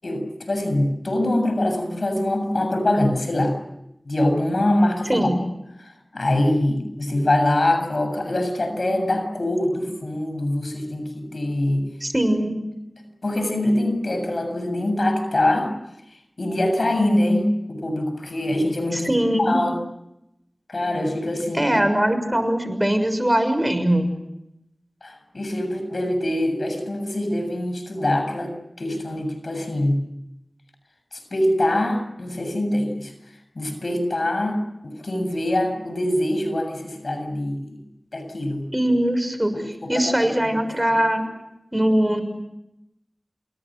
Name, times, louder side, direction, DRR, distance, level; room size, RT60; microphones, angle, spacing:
voice 1, 0.0-3.6 4.1-5.3 5.8-11.9 13.2-15.7 16.4-19.8 20.7-21.7 25.0-30.0 31.1-33.1 33.6-37.8 38.1-38.7 39.5-40.6, left 1 dB, 80° left, 7 dB, 7.5 m, -24 dB
voice 2, 12.0-12.5 19.0-19.6 21.5-24.1 38.7-41.2 41.7-42.2, right 1 dB, 15° right, 9 dB, 6.3 m, -21 dB
29.5 x 27.0 x 6.3 m, 0.85 s
wide cardioid pair, 50°, 0 cm